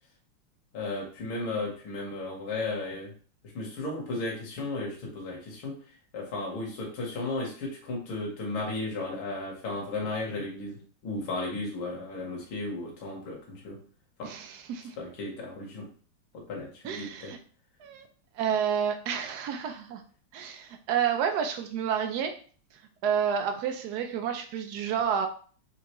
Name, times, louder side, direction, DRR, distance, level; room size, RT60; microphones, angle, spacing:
voice 1, 0.7-3.1 3.6-5.8 6.1-10.8 11.0-13.8 14.2-14.3 15.0-15.9 16.3-17.3, left 2 dB, 75° left, -2 dB, 1.9 m, -34 dB
voice 2, 14.2-15.0 16.8-17.4 17.8-18.1 18.4-20.0 20.3-22.4 23.0-25.3, right 8 dB, 85° right, 6 dB, 0.8 m, -30 dB
4.4 x 3.7 x 3.0 m, 0.43 s
omnidirectional pair, 2.3 m